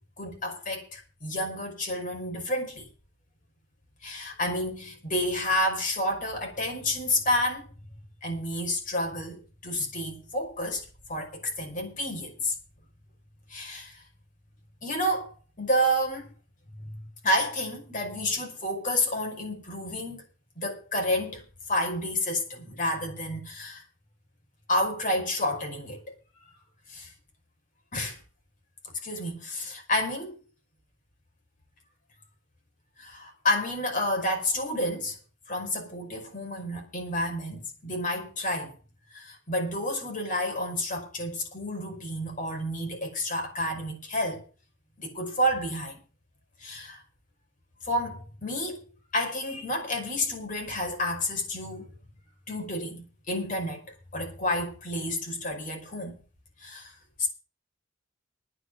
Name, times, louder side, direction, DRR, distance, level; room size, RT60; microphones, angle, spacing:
voice 1, 0.2-2.9 4.0-7.7 8.2-12.5 13.5-14.0 14.8-15.3 15.6-16.3 16.7-20.2 20.6-23.8 24.7-26.0 26.9-27.1 27.9-28.2 29.0-30.4 33.0-35.2 35.5-38.8 39.1-44.5 45.0-46.0 46.6-47.0 47.8-48.8 49.1-51.9 52.5-56.2 56.6-56.9 57.2-57.3, left 1 dB, 40° left, 5.5 m, -30 dB
10.0 x 9.0 x 9.3 m
head